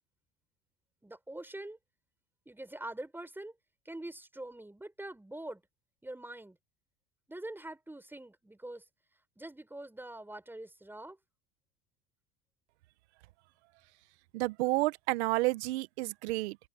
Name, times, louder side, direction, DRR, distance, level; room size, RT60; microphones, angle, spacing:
voice 1, 1.0-1.8 2.5-3.5 3.8-5.6 6.0-6.6 7.3-8.8 9.4-11.2, right 1 dB, 5° right, 6.1 m, -44 dB
voice 2, 14.3-16.6, right 21 dB, 75° right, 1.1 m, -30 dB
supercardioid pair, 105°, 33 cm